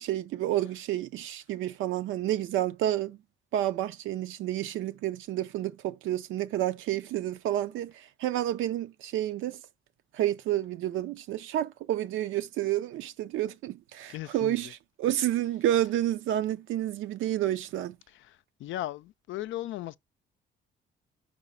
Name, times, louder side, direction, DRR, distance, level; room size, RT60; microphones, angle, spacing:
voice 1, 0.0-3.2 3.5-9.6 10.1-14.7 15.0-18.0, right 13 dB, 85° right, 0.6 m, -30 dB
voice 2, 14.1-14.7 18.1-20.0, left 14 dB, 75° left, 0.4 m, -37 dB
5.0 x 4.9 x 5.4 m
cardioid pair, 90°, 20 cm